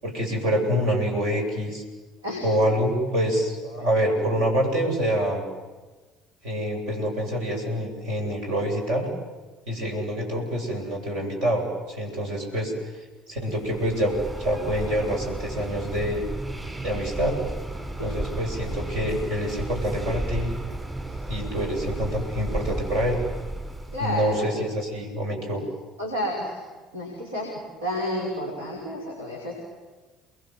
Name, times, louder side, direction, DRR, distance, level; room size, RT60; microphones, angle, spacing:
voice 1, 0.0-1.8 2.4-5.4 6.4-9.1 9.7-12.7 13.3-14.1 14.4-16.2 16.8-17.4 18.0-20.5 21.3-23.2 24.0-25.6, equal, 65° right, 1 dB, 7.9 m, -26 dB
voice 2, 2.2-2.9 18.0-18.1 23.9-24.5 26.0-26.6 26.9-29.5, left 1 dB, 90° right, -2 dB, 5.8 m, -31 dB
sound 1, 13.5-24.4, right 2 dB, 20° right, 6.9 m, -33 dB
29.5 x 22.0 x 7.9 m, 1.3 s
hypercardioid pair, 60°, 0 cm